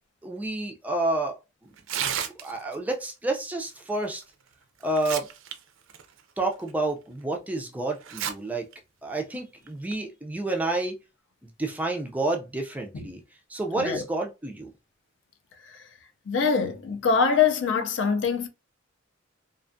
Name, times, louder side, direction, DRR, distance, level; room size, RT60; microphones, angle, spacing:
voice 1, 0.2-1.4 1.6-1.7 2.0-4.2 4.8-5.3 6.4-8.7 9.0-11.0 11.6-13.2 13.5-14.7, right 2 dB, 10° right, 0.3 m, -29 dB
Tearing, 1.8-2.8 4.2-4.3 4.8-5.5 5.9-6.0 6.7-6.8 8.0-8.3 8.7-8.8 9.7-9.9, right 9 dB, 75° right, 0.4 m, -31 dB
voice 2, 16.3-18.5, left 5 dB, 60° left, 0.4 m, -24 dB
2.4 x 2.2 x 2.5 m
head